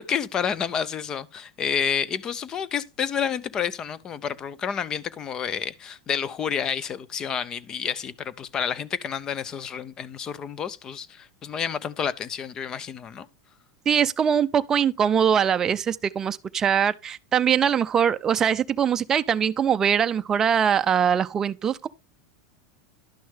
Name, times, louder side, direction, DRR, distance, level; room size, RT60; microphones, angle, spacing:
voice 1, 0.0-13.3, left 7 dB, 25° left, 0.7 m, -29 dB
voice 2, 13.9-21.9, right 8 dB, 20° right, 0.5 m, -22 dB
11.5 x 6.2 x 3.5 m
supercardioid pair, 140°, 2 cm